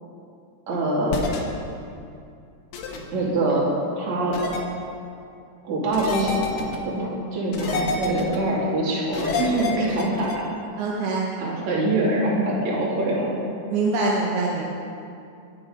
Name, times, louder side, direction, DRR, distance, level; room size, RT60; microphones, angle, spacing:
voice 1, 0.7-1.3 2.9-4.4 5.6-10.4 11.4-13.3, right 1 dB, 45° right, -5 dB, 3.8 m, -24 dB
sound 1, 1.1-1.4 2.7-3.0 4.3-4.6 5.9-6.8 7.5-8.4 9.1-10.4, left 4 dB, 75° left, 3.1 m, -28 dB
voice 2, 9.4-9.9 10.8-11.2 13.7-14.6, right 3 dB, 75° right, -3 dB, 3.2 m, -24 dB
22.0 x 7.8 x 5.2 m, 2.5 s
omnidirectional pair, 4.8 m